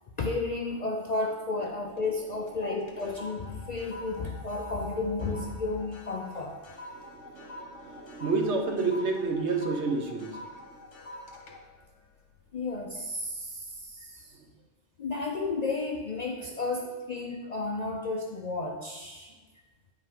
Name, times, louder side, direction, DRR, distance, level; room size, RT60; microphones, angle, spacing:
voice 1, 0.2-6.5 12.5-14.3 15.0-19.3, left 3 dB, 50° left, 1 dB, 0.5 m, -32 dB
sound 1, 1.6-2.2 2.5-13.0 13.5-13.8, left 1 dB, 90° left, 1.3 m, -46 dB
voice 2, 6.9-10.4 10.6-10.8 14.4-14.5, right 3 dB, 70° right, 3 dB, 1.1 m, -30 dB
9.0 x 4.9 x 3.6 m, 1.3 s
omnidirectional pair, 1.3 m